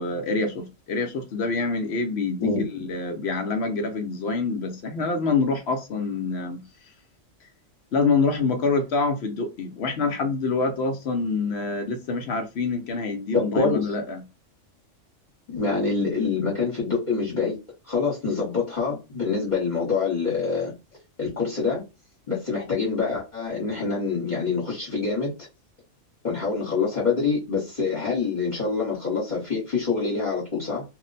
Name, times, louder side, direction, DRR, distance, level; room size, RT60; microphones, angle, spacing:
voice 1, 0.0-2.5 2.8-6.6 7.9-14.2, left 4 dB, 65° left, 0.8 m, -26 dB
voice 2, 13.3-13.8 15.5-17.6 17.9-20.7 21.2-21.8 22.3-25.3 26.2-30.8, left 4 dB, 40° left, 1.2 m, -25 dB
2.5 x 2.1 x 3.9 m
omnidirectional pair, 1.3 m